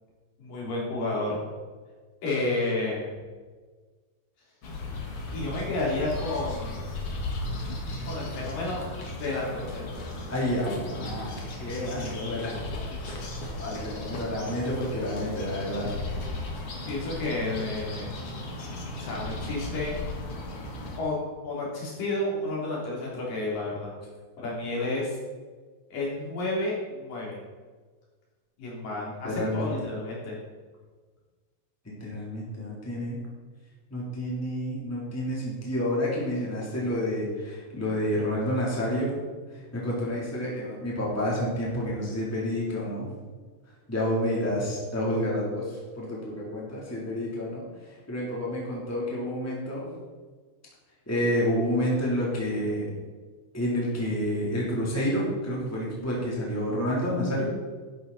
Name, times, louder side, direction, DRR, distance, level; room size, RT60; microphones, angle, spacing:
voice 1, 0.4-1.4 2.2-3.1 5.3-6.8 8.0-8.8 9.2-10.1 16.9-18.1 19.0-20.0 21.0-23.9 24.4-25.2 25.9-27.4 28.6-30.4, left 2 dB, 70° left, -5 dB, 5.0 m, -31 dB
sound 1, 4.6-21.0, left 2 dB, 45° left, 2.4 m, -36 dB
voice 2, 10.3-11.3 11.6-12.6 13.0-13.2 13.6-15.9 29.2-29.9 32.0-33.2 33.9-39.1 39.5-43.1 43.9-49.8 51.1-52.9 53.5-57.4, equal, 5° left, -5 dB, 2.9 m, -29 dB
12.5 x 10.5 x 4.2 m, 1.4 s
omnidirectional pair, 4.1 m